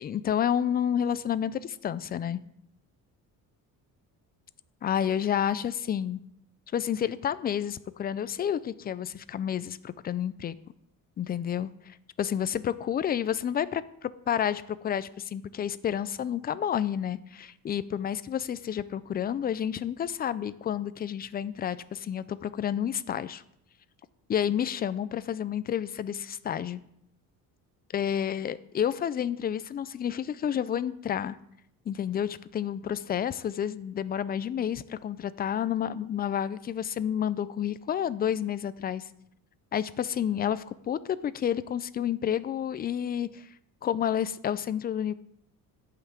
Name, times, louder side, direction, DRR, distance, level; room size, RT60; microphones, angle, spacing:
voice 1, 0.0-2.4 4.8-6.2 6.7-10.6 11.2-23.4 24.3-26.8 27.9-31.4 31.9-39.0 39.7-43.5 43.8-45.1, left 9 dB, 25° left, 15 dB, 0.4 m, -30 dB
10.5 x 5.8 x 8.2 m, 0.75 s
cardioid pair, 150°, 35 cm